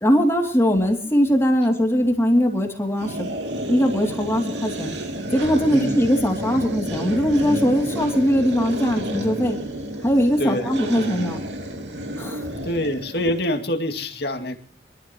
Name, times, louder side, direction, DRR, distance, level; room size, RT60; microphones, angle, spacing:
voice 1, 0.0-3.3 3.7-4.9 5.3-9.6 10.0-11.4 12.2-12.5, equal, 15° left, 2 dB, 2.8 m, -20 dB
sound 1, 3.0-13.4, right 1 dB, 85° right, 2.8 m, -30 dB
voice 2, 10.4-10.7 12.6-14.6, left 1 dB, 65° left, 4 dB, 2.5 m, -25 dB
25.0 x 14.0 x 3.1 m, 0.41 s
head